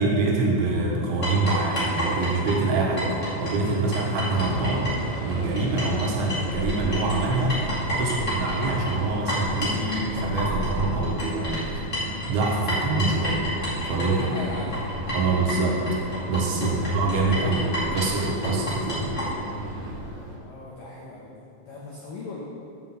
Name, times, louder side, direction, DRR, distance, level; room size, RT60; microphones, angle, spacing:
voice 1, 0.0-4.9 5.2-11.6 12.3-13.4 13.8-14.2 15.1-15.9 16.3-19.2, right 3 dB, 75° right, -2 dB, 3.5 m, -25 dB
sound 1, 1.2-6.0 6.3-19.3, equal, 45° left, 0.9 m, -30 dB
sound 2, 1.2-19.9, equal, 55° right, 2.1 m, -36 dB
sound 3, 4.3-20.4, right 1 dB, 25° right, 1.1 m, -39 dB
voice 2, 13.9-15.4 16.5-17.0 20.4-22.4, left 3 dB, 80° left, -5 dB, 2.0 m, -39 dB
8.5 x 5.7 x 7.5 m, 2.5 s
omnidirectional pair, 5.6 m